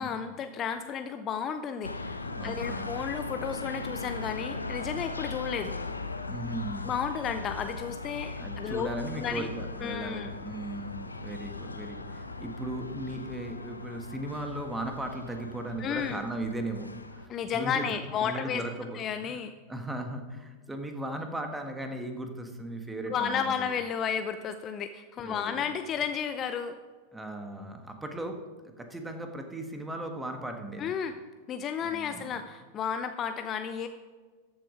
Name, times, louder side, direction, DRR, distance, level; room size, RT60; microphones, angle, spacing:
voice 1, 0.0-5.8 6.8-9.5 9.8-10.3 15.8-16.2 17.3-18.6 18.9-19.5 23.1-26.8 30.8-31.1 31.5-33.9, left 7 dB, 30° left, 9 dB, 0.6 m, -33 dB
sound 1, 1.8-17.3, left 3 dB, 80° left, 0.8 m, -39 dB
voice 2, 2.4-2.9 6.3-6.9 8.4-17.9 18.2-19.4 19.7-23.7 25.2-25.7 27.1-28.4 28.6-30.9 31.8-32.3, right 1 dB, 10° right, 5 dB, 1.6 m, -37 dB
13.5 x 8.0 x 5.1 m, 1.4 s
figure-of-eight pair, 90°, 0 cm